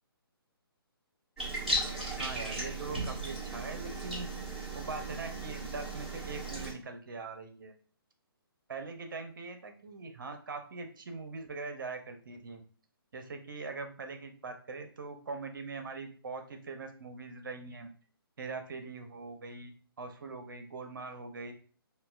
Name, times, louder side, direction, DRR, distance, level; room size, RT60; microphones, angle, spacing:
sound 1, 1.4-6.7, right 1 dB, ahead, 1.5 m, -36 dB
voice 1, 2.1-4.3 4.7-7.7 8.7-12.6 13.1-17.9 18.4-19.7 20.0-21.5, right 4 dB, 55° right, 7 dB, 0.7 m, -42 dB
5.3 x 2.2 x 2.4 m, 0.42 s
figure-of-eight pair, 135°, 13 cm